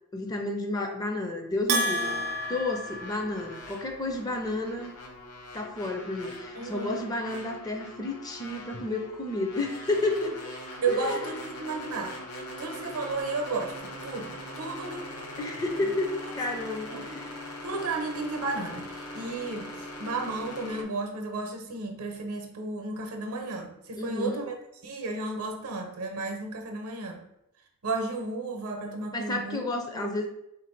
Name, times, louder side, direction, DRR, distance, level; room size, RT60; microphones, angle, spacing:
voice 1, 0.1-2.2 2.5-4.9 5.5-10.4 10.9-11.3 15.4-17.3 24.0-24.4 29.1-30.2, left 2 dB, 15° left, 3 dB, 0.4 m, -31 dB
Bell, 1.7-3.8, right 1 dB, 45° right, 0.4 m, -30 dB
sound 1, 2.0-20.8, left 1 dB, 85° left, 0.8 m, -42 dB
voice 2, 6.6-7.1 10.8-15.1 15.8-15.9 16.2-17.2 17.6-24.5 24.8-27.2 27.8-29.6 29.9-30.1, right 3 dB, 75° right, 4 dB, 0.7 m, -33 dB
3.2 x 2.6 x 4.3 m, 0.82 s
head